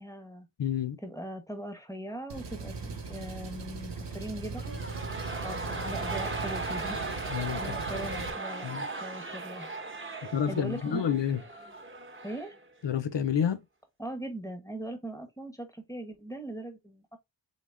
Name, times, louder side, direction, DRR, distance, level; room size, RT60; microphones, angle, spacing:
voice 1, 0.0-0.5 1.0-4.8 5.4-9.7 10.1-11.0 12.2-12.5 14.0-17.2, right 1 dB, 10° left, 1.2 m, -40 dB
voice 2, 0.6-1.0 7.3-7.6 8.6-8.8 10.3-11.4 12.8-13.6, left 8 dB, 85° left, 0.5 m, -29 dB
Engine, 2.3-8.3, right 4 dB, 80° right, 0.9 m, -39 dB
sound 1, 4.5-12.6 12.9-13.0, right 3 dB, 30° right, 1.0 m, -37 dB
3.9 x 3.5 x 3.4 m
wide cardioid pair, 45°, 42 cm